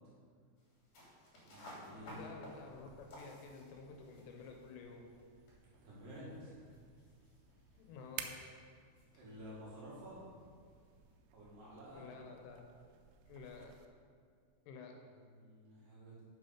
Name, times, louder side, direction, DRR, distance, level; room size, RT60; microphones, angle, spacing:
sound 1, 0.6-11.1, left 1 dB, 45° left, 2.7 m, -58 dB
voice 1, 1.4-2.3 5.8-6.7 9.1-10.3 11.3-12.1 15.2-16.2, equal, 55° right, -8 dB, 3.0 m, -52 dB
sound 2, 2.0-13.9, right 8 dB, 80° right, 2.8 m, -56 dB
voice 2, 2.2-5.1 7.7-8.4 11.9-12.7 13.3-13.8 14.7-15.0, left 4 dB, 80° left, 2 dB, 3.4 m, -51 dB
9.7 x 6.1 x 5.7 m, 2.1 s
omnidirectional pair, 5.8 m